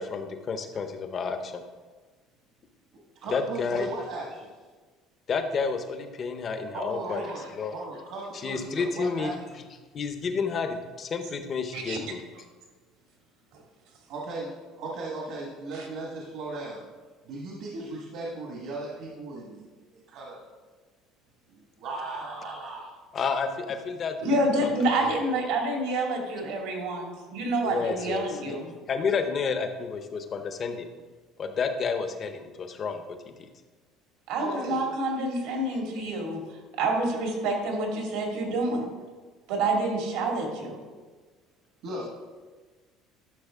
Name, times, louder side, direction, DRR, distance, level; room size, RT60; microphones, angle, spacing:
voice 1, 0.0-1.6 3.3-3.9 5.3-7.7 8.3-9.6 9.9-12.2 23.1-24.7 27.6-28.6 28.9-30.9 31.4-33.5, left 5 dB, 25° left, 7 dB, 0.6 m, -30 dB
voice 2, 3.2-4.5 6.7-9.4 14.1-16.8 17.2-19.6 19.9-20.4 21.8-22.9 34.4-34.8 41.8-42.1, right 2 dB, 55° right, -2 dB, 1.5 m, -37 dB
voice 3, 24.2-28.7 34.3-38.9 39.5-40.8, right 2 dB, 70° right, 1 dB, 2.1 m, -28 dB
11.5 x 6.2 x 3.6 m, 1.4 s
cardioid pair, 180°, 0 cm